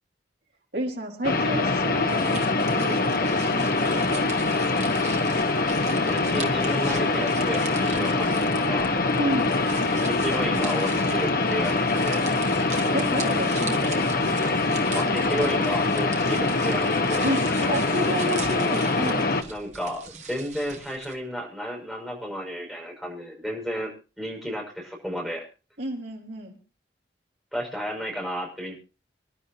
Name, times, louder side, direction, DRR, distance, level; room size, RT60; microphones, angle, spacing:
voice 1, 0.7-4.3 9.2-9.6 12.9-14.1 17.2-19.3 25.8-26.6, right 1 dB, 70° right, -1 dB, 4.0 m, -31 dB
sound 1, 1.2-19.4, left 3 dB, 50° left, 1.1 m, -24 dB
sound 2, 2.1-21.1, right 6 dB, 40° right, 1.8 m, -41 dB
voice 2, 6.1-8.9 10.1-12.3 14.9-17.3 19.5-23.9 24.2-25.4 27.5-28.8, equal, ahead, -2 dB, 5.9 m, -32 dB
27.0 x 11.0 x 2.8 m, 0.33 s
head